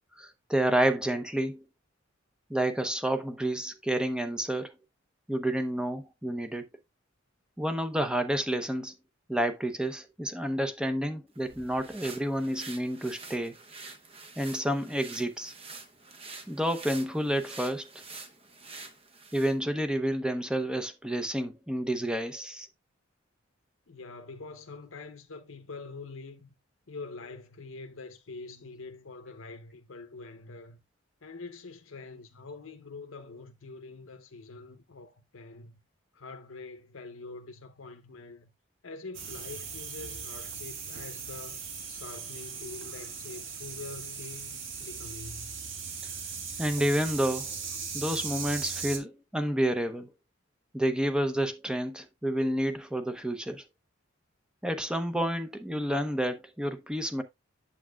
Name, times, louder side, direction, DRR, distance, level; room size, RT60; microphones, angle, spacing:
voice 1, 0.2-1.6 2.5-4.7 5.3-6.7 7.6-8.9 9.3-13.6 14.4-15.5 16.5-17.9 19.3-22.7 46.6-47.6 47.9-50.1 50.7-53.6 54.6-57.2, right 1 dB, 5° right, 0.7 m, -29 dB
sound 1, 11.3-19.6, right 3 dB, 30° right, 1.0 m, -47 dB
voice 2, 23.9-26.5 26.9-30.8 31.2-35.8 36.1-38.5 38.8-41.6 41.9-45.5, left 3 dB, 85° left, 0.8 m, -45 dB
sound 2, 39.1-49.0, right 6 dB, 70° right, 1.5 m, -38 dB
8.5 x 7.3 x 2.3 m
head